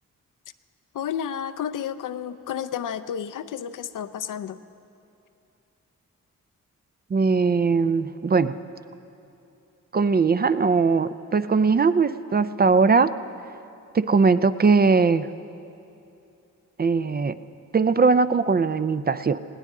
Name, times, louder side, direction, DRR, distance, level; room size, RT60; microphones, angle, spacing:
voice 1, 0.9-4.6, left 8 dB, 75° left, 11 dB, 0.6 m, -31 dB
voice 2, 7.1-8.5 9.9-13.1 13.9-15.3 16.8-17.4 17.7-19.4, right 4 dB, 30° right, 13 dB, 0.4 m, -20 dB
20.0 x 16.5 x 3.7 m, 2.7 s
cardioid pair, 80°, 32 cm